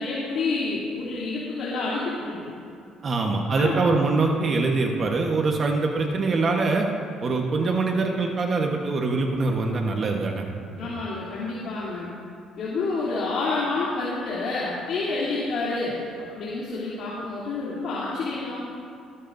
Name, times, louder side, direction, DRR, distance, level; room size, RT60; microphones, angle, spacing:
voice 1, 0.0-2.5 3.6-3.8 10.8-12.1 12.6-16.0 16.3-18.6, left 3 dB, 65° left, -8 dB, 3.1 m, -28 dB
voice 2, 3.0-6.9 7.2-10.4 10.7-10.9, right 3 dB, 40° right, 2 dB, 1.2 m, -23 dB
19.0 x 12.5 x 2.7 m, 2.5 s
cardioid pair, 110°, 0 cm